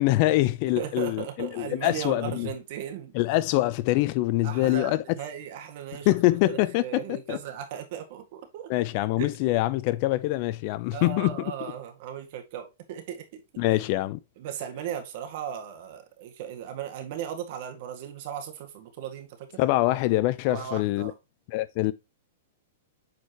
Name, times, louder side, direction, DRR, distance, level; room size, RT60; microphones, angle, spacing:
voice 1, 0.0-2.5 3.1-5.0 6.1-7.4 8.7-11.3 13.6-14.2 19.6-21.1 21.5-21.9, left 17 dB, 45° left, 0.5 m, -24 dB
voice 2, 0.8-3.1 4.4-6.1 6.5-8.7 9.2-9.4 10.9-13.6 14.4-19.6 20.5-21.1, right 9 dB, 55° right, 1.9 m, -37 dB
8.2 x 4.5 x 2.9 m
hypercardioid pair, 140°, 0 cm